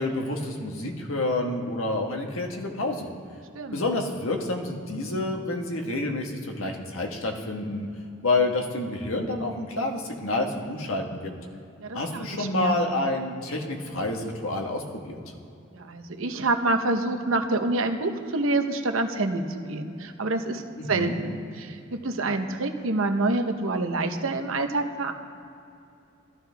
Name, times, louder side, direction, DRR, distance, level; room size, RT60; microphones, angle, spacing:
voice 1, 0.0-3.1 3.7-7.9 8.2-11.3 11.9-15.2 20.8-21.2, left 2 dB, 90° left, 2 dB, 1.4 m, -28 dB
voice 2, 3.5-3.9 11.8-12.8 15.7-19.4 19.7-20.6 20.9-25.1, right 2 dB, 85° right, 6 dB, 0.9 m, -27 dB
15.5 x 12.5 x 3.4 m, 2.7 s
head